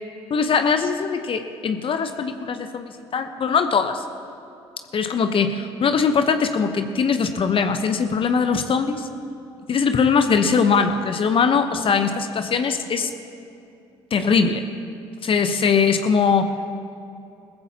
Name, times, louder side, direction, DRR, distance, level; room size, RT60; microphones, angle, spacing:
voice 1, 0.3-4.0 4.9-9.1 9.7-13.1 14.1-14.6 15.2-16.5, left 5 dB, 40° left, 8 dB, 0.9 m, -21 dB
20.5 x 14.5 x 2.9 m, 2.6 s
figure-of-eight pair, 50°, 14 cm